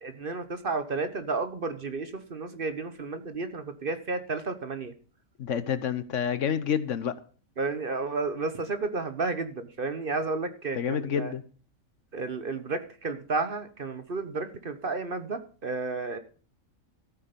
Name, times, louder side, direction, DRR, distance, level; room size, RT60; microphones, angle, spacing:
voice 1, 0.0-4.9 7.6-11.3 12.1-16.2, right 3 dB, 45° right, 10 dB, 1.1 m, -32 dB
voice 2, 5.4-7.2 10.7-11.4, left 8 dB, 65° left, 14 dB, 1.2 m, -28 dB
13.5 x 8.5 x 5.2 m, 0.39 s
omnidirectional pair, 1.4 m